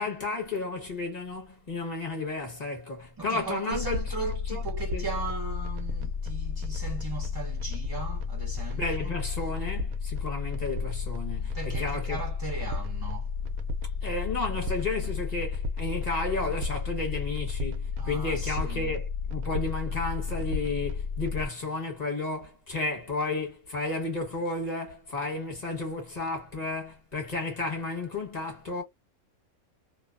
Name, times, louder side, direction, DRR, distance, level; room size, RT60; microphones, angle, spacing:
voice 1, 0.0-4.0 4.5-4.6 4.9-5.0 8.8-12.2 14.0-19.0 19.3-28.8, left 3 dB, 30° left, 1.1 m, -32 dB
voice 2, 3.2-9.1 11.5-13.3 18.0-19.0, right 4 dB, 35° right, 0.4 m, -37 dB
sound 1, 3.7-21.5, left 5 dB, 85° right, 1.1 m, -32 dB
2.6 x 2.1 x 2.3 m
omnidirectional pair, 1.5 m